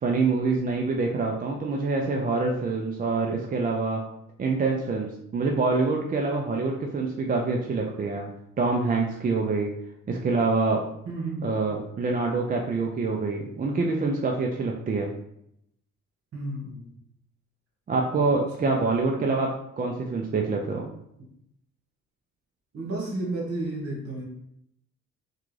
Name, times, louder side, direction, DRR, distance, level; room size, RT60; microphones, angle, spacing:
voice 1, 0.0-4.0 4.4-8.3 8.6-9.7 10.1-10.8 11.4-15.1 17.9-19.5 19.8-20.9, right 3 dB, 30° right, 0 dB, 0.4 m, -26 dB
voice 2, 11.1-11.5 16.3-16.9 18.6-18.7 21.2-21.3 22.7-24.2, right 2 dB, 50° right, -2 dB, 1.3 m, -32 dB
3.6 x 2.3 x 3.2 m, 0.76 s
cardioid pair, 90°, 30 cm